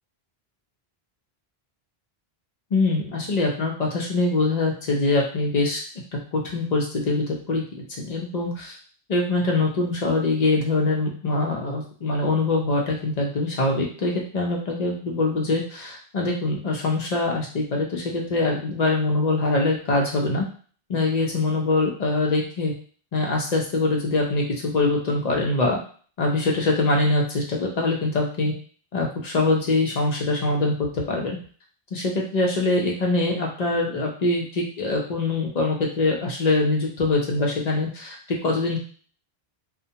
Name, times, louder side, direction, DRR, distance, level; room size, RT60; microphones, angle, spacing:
voice 1, 2.7-5.8 6.3-7.6 8.0-8.7 9.1-20.5 20.9-22.7 23.1-25.8 26.2-28.5 28.9-31.3 31.9-38.2 38.4-38.8, left 2 dB, 45° left, -1 dB, 0.7 m, -23 dB
2.3 x 2.1 x 2.7 m, 0.42 s
omnidirectional pair, 1.0 m